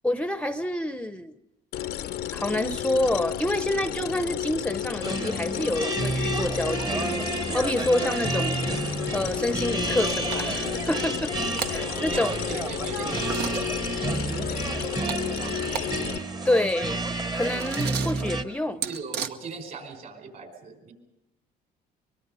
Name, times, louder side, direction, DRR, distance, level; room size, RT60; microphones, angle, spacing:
voice 1, 0.0-1.3 2.3-7.1 7.5-8.6 9.1-11.3 11.7-12.3 16.4-17.0 17.3-18.8, left 1 dB, 5° left, 11 dB, 0.7 m, -27 dB
sound 1, 1.7-16.2, left 11 dB, 70° left, 0.7 m, -32 dB
sound 2, 5.0-18.4, right 3 dB, 25° right, 1.0 m, -30 dB
sound 3, 9.1-9.5 9.9-10.0 10.3-10.7 11.2-11.8 13.1-13.7 14.7-15.9 16.2-16.3 16.5-19.3, right 7 dB, 75° right, 1.1 m, -35 dB
voice 2, 11.8-13.8 14.3-15.7 18.8-20.9, right 4 dB, 55° right, 5 dB, 5.1 m, -40 dB
24.0 x 22.0 x 5.5 m, 0.93 s
cardioid pair, 110°, 17 cm